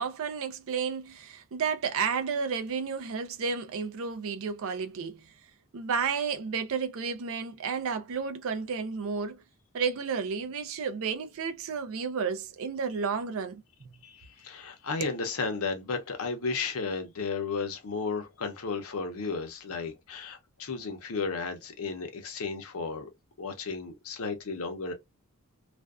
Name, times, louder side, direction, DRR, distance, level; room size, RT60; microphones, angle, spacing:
voice 1, 0.0-5.3 5.7-9.4 9.7-13.9 15.0-15.1, right 5 dB, 65° right, 0.4 m, -32 dB
voice 2, 14.0-23.1 23.4-24.9, left 4 dB, 65° left, 0.7 m, -34 dB
2.5 x 2.1 x 2.3 m
head